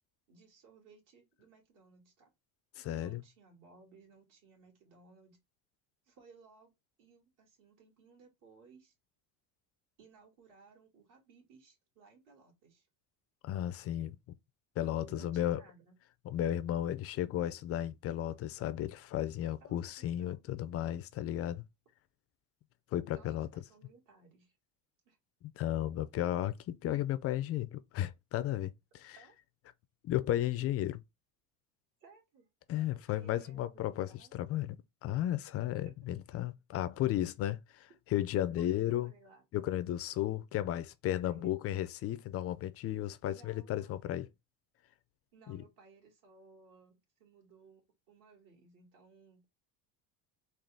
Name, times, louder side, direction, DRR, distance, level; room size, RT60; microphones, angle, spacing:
voice 1, 0.3-2.3 2.9-5.4 6.1-6.7 7.0-8.9 10.0-12.9 15.1-16.0 19.6-20.4 23.1-24.6 25.1-25.2 29.2-29.3 32.0-34.3 35.8-35.9 38.6-39.4 41.2-41.6 43.3-44.1 45.3-49.5, right 5 dB, 50° right, 2.1 m, -60 dB
voice 2, 2.8-3.2 13.4-14.2 14.8-15.6 16.2-21.6 22.9-23.5 25.4-29.2 30.0-31.0 32.7-34.8 35.0-39.1 39.5-44.3 45.5-45.6, left 12 dB, 40° left, 0.4 m, -34 dB
3.9 x 2.4 x 3.3 m
supercardioid pair, 120°, 40 cm